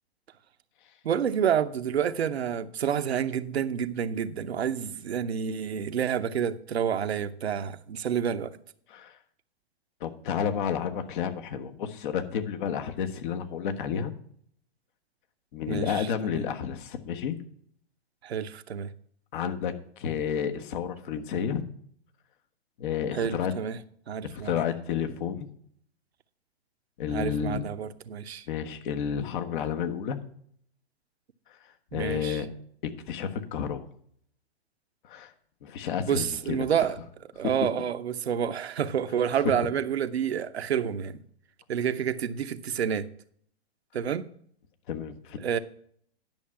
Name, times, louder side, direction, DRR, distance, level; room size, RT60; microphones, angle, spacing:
voice 1, 1.0-8.5 15.7-16.5 18.2-18.9 23.1-23.8 24.1-24.6 27.1-28.4 31.9-32.4 36.0-37.0 37.4-41.2 41.7-43.1 43.9-44.3 45.4-45.6, right 8 dB, 80° right, 0.9 m, -29 dB
voice 2, 10.0-14.1 15.5-17.4 19.3-21.6 22.8-23.5 24.3-25.5 27.0-27.6 28.5-30.2 31.9-32.5 32.8-33.9 35.1-35.3 35.6-36.7 44.9-45.4, left 8 dB, 50° left, 1.4 m, -31 dB
10.5 x 6.4 x 5.8 m
hypercardioid pair, 120°, 32 cm